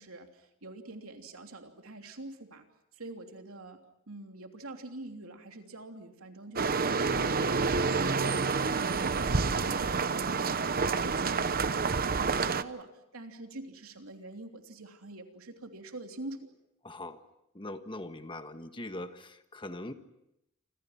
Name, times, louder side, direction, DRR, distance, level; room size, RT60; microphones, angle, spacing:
voice 1, 0.0-2.7 2.9-3.8 4.1-8.4 8.7-16.5, right 2 dB, 90° right, 4 dB, 3.2 m, -45 dB
sound 1, 6.6-12.6, right 4 dB, 45° right, 0.9 m, -28 dB
voice 2, 16.8-17.2 17.5-19.9, left 1 dB, 25° left, 8 dB, 1.4 m, -41 dB
29.0 x 26.0 x 5.9 m, 0.83 s
head